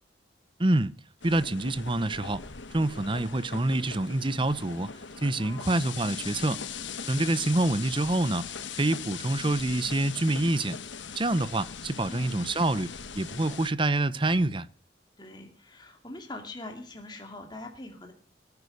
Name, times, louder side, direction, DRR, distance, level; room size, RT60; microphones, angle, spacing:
voice 1, 0.6-0.9 1.2-2.4 2.7-4.9 5.2-6.6 7.1-10.8 11.1-14.7, right 2 dB, 25° right, 0.8 m, -27 dB
sound 1, 1.2-13.7, left 6 dB, 80° left, 1.2 m, -40 dB
voice 2, 5.4-6.0 12.1-12.5 15.2-18.1, left 2 dB, 25° left, 2.4 m, -43 dB
19.5 x 9.8 x 6.5 m
head